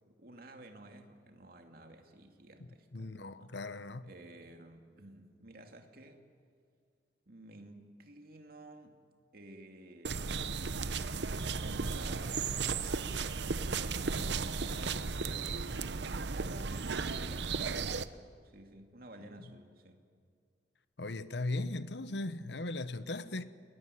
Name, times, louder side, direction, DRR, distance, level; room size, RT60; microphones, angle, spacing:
voice 1, 0.0-3.5 4.0-6.2 7.3-9.0 9.3-10.7 11.6-12.9 13.2-15.6 16.3-20.0, right 1 dB, 55° right, 2.5 m, -53 dB
voice 2, 2.9-4.1 21.0-23.4, left 2 dB, 70° left, 1.0 m, -38 dB
sound 1, 10.0-18.0, right 4 dB, 70° right, 0.8 m, -35 dB
28.5 x 21.5 x 9.9 m
head